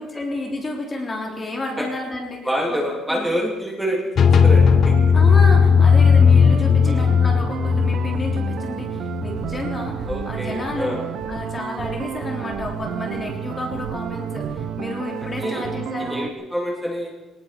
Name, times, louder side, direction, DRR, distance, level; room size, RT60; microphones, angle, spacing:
voice 1, 0.0-2.4 2.7-2.8 3.1-3.3 5.1-16.3, left 2 dB, 20° left, 0 dB, 3.4 m, -31 dB
voice 2, 2.4-5.0 6.8-7.1 10.1-11.0 15.0-15.1 15.4-15.7 16.0-17.1, equal, ahead, -1 dB, 3.2 m, -27 dB
sound 1, 4.2-9.9, left 6 dB, 35° left, 1.2 m, -15 dB
sound 2, 4.3-16.3, right 9 dB, 55° right, 1.1 m, -31 dB
sound 3, 9.3-9.6 10.0-10.3 10.6-11.4 11.8-12.0 12.5-12.7 13.1-13.3 13.7-13.9 14.4-14.6 15.2-15.5, right 1 dB, 30° right, 7.1 m, -36 dB
22.5 x 19.5 x 6.0 m, 1.1 s
cardioid pair, 180°, 0 cm